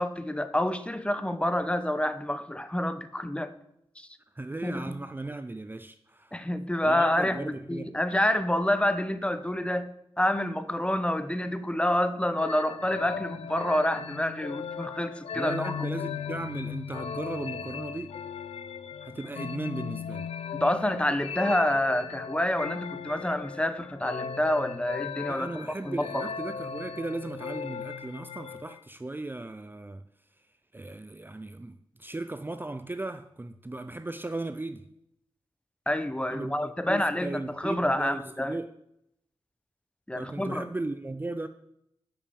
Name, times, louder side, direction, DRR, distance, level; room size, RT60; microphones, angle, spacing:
voice 1, 0.0-3.5 4.0-4.1 4.6-5.0 6.3-15.7 20.5-26.2 35.9-38.6 40.1-40.7, left 1 dB, 10° left, 11 dB, 0.8 m, -28 dB
voice 2, 4.4-6.4 6.8-7.9 15.3-18.1 19.0-20.3 25.3-30.0 30.7-34.9 36.3-38.7 40.2-41.5, right 2 dB, 20° right, 9 dB, 0.5 m, -37 dB
sound 1, 12.4-28.8, left 7 dB, 85° left, 0.4 m, -37 dB
8.6 x 5.9 x 6.9 m, 0.78 s
cardioid pair, 55°, 10 cm